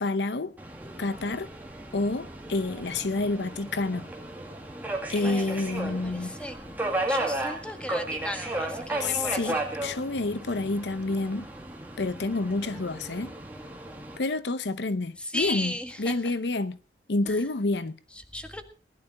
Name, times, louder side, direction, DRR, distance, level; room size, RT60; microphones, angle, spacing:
voice 1, 0.0-0.5 1.0-1.5 1.9-4.1 5.1-6.3 9.0-11.5 12.0-13.3 14.2-15.7 16.0-16.8 17.1-18.0, left 2 dB, 80° left, 0.8 m, -28 dB
Subway metro underground, 0.6-14.2, right 1 dB, 10° right, 2.5 m, -35 dB
voice 2, 5.1-5.5 5.8-6.6 7.1-9.6 15.2-16.3 17.2-17.5 18.1-18.6, left 1 dB, 5° left, 1.5 m, -36 dB
19.5 x 11.0 x 4.1 m
head